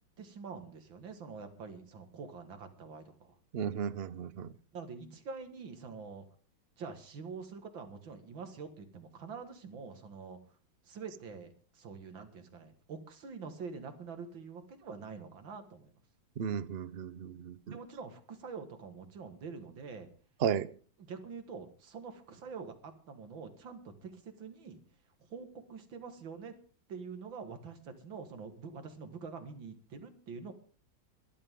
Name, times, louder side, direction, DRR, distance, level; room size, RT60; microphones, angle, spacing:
voice 1, 0.2-3.4 4.7-6.3 6.8-10.6 10.8-16.0 17.7-20.1 21.0-24.8 25.3-26.5 26.9-30.5, right 5 dB, 85° right, 7 dB, 2.6 m, -46 dB
voice 2, 3.5-4.5 16.4-17.6 20.4-20.7, right 8 dB, 65° right, 15 dB, 0.6 m, -34 dB
22.0 x 12.0 x 3.8 m, 0.41 s
omnidirectional pair, 2.1 m